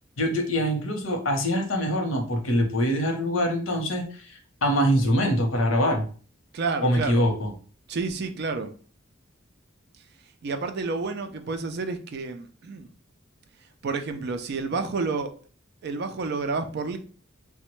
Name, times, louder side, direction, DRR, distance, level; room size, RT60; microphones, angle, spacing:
voice 1, 0.2-6.0 6.8-7.5, equal, 85° left, 4 dB, 0.7 m, -24 dB
voice 2, 6.5-7.2 7.9-8.7 10.4-12.9 13.8-15.3 15.8-17.0, right 4 dB, 55° right, 8 dB, 0.4 m, -30 dB
3.2 x 2.1 x 3.0 m, 0.40 s
head